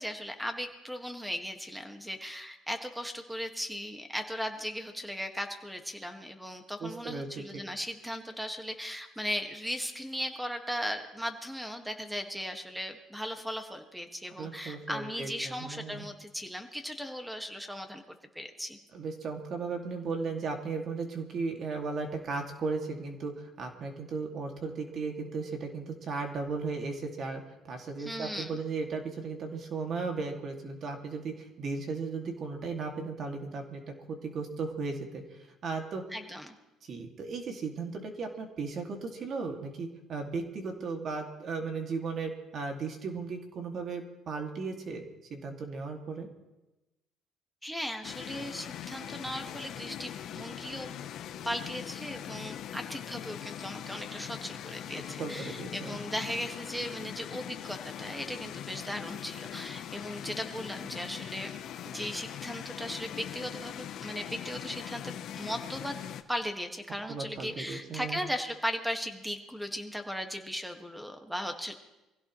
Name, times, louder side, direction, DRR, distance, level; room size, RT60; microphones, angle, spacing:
voice 1, 0.0-18.0 18.4-18.8 28.0-28.6 36.1-36.6 47.6-51.0 51.4-61.6 61.9-71.7, equal, ahead, 5 dB, 1.8 m, -37 dB
voice 2, 6.8-7.6 14.4-16.0 18.9-36.0 36.8-45.0 45.3-46.3 55.2-56.0 67.1-68.2, right 4 dB, 50° right, 3 dB, 2.4 m, -36 dB
sound 1, 48.0-66.2, left 10 dB, 65° left, 0.9 m, -41 dB
24.0 x 16.0 x 3.2 m, 1.0 s
cardioid pair, 105°, 0 cm